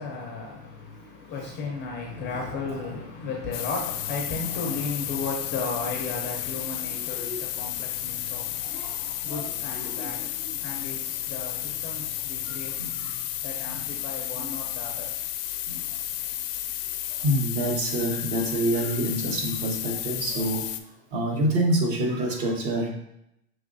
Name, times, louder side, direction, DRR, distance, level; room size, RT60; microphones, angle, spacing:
voice 1, 0.0-12.9 13.4-15.1, left 4 dB, 25° left, 0.5 m, -35 dB
voice 2, 2.1-2.4 7.1-7.4 8.6-8.9 9.3-10.6 12.5-13.2 13.7-13.9 14.4-14.5 15.7-15.8 17.2-20.6 21.1-22.9, right 1 dB, 40° right, 1.0 m, -28 dB
sound 1, 3.5-20.8, left 13 dB, 75° left, 0.6 m, -32 dB
5.7 x 3.0 x 2.6 m
supercardioid pair, 130°, 48 cm